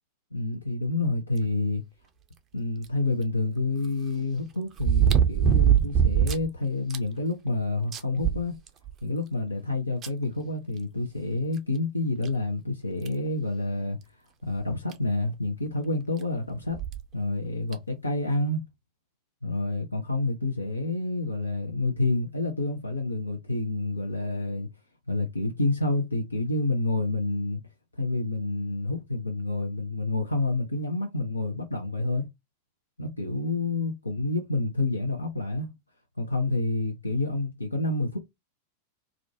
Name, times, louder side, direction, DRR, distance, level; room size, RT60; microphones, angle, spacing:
voice 1, 0.3-1.8 2.5-8.6 9.0-14.0 14.4-16.8 17.1-18.6 19.4-24.7 25.1-27.6 28.0-32.3 33.0-35.7 36.2-38.2, left 2 dB, 80° left, 0.4 m, -28 dB
sound 1, 2.8-2.9 4.8-6.5 6.9-7.0 7.5-7.6 7.9-9.0 10.0-10.1 11.6-11.7 12.2-12.3 13.0-13.3 14.6-14.7 14.9-15.0 16.7-17.0 17.7-17.8, right 8 dB, 30° right, 0.4 m, -22 dB
2.4 x 2.1 x 2.5 m
figure-of-eight pair, 90°, 0 cm